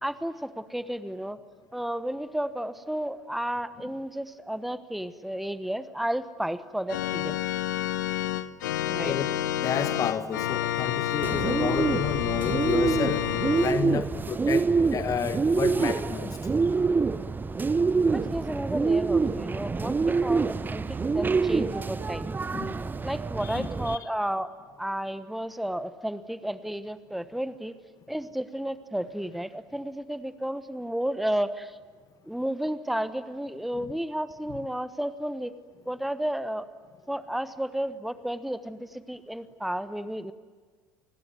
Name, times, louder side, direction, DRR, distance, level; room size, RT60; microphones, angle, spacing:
voice 1, 0.0-1.4 1.7-7.4 8.9-9.1 17.5-17.7 18.1-20.8 21.1-22.3 23.0-24.5 24.8-27.8 28.1-31.8 32.3-35.5 35.9-36.7 37.1-40.3, right 1 dB, ahead, 13 dB, 1.2 m, -32 dB
Organ, 6.9-13.7, left 12 dB, 70° left, 1.0 m, -29 dB
voice 2, 9.0-9.3 9.6-13.3 13.6-16.4 22.5-22.8 23.4-24.1 33.7-33.9, left 7 dB, 35° left, 11 dB, 1.2 m, -31 dB
Bird, 11.2-24.0, right 4 dB, 20° right, 0.8 m, -26 dB
29.5 x 21.0 x 9.5 m, 1.5 s
figure-of-eight pair, 65°, 10 cm